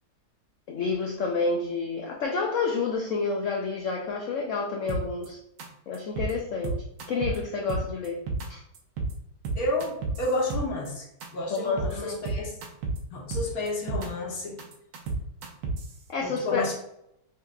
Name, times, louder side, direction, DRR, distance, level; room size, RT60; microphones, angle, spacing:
voice 1, 0.7-5.4 5.9-6.7 7.1-8.2 8.5-8.6 11.5-12.2 16.1-16.7, left 4 dB, 80° left, 0 dB, 0.6 m, -29 dB
sound 1, 4.9-5.3 5.6-5.7 5.9-6.3 6.6-7.4 7.7-8.5 8.7-9.1 9.4-10.9 11.2-11.3 11.6-11.9 12.3-13.0 13.3-14.1 14.4-15.9, right 3 dB, 80° right, 1.4 m, -30 dB
voice 2, 9.5-11.0 11.3-12.5 13.1-14.6 16.2-16.7, left 1 dB, 60° left, -1 dB, 1.3 m, -31 dB
5.6 x 2.9 x 2.3 m, 0.79 s
omnidirectional pair, 2.0 m